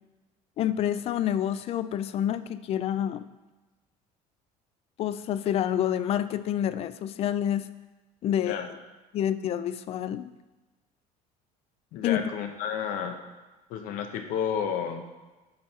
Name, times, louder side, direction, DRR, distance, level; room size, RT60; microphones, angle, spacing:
voice 1, 0.6-3.2 5.0-7.7 8.2-8.7 9.1-10.3 12.0-12.3, left 10 dB, 40° left, 13 dB, 0.4 m, -28 dB
voice 2, 8.3-8.7 11.9-13.2 13.7-15.1, left 8 dB, 70° left, 6 dB, 1.0 m, -31 dB
8.5 x 5.5 x 4.5 m, 1.2 s
cardioid pair, 140°, 15 cm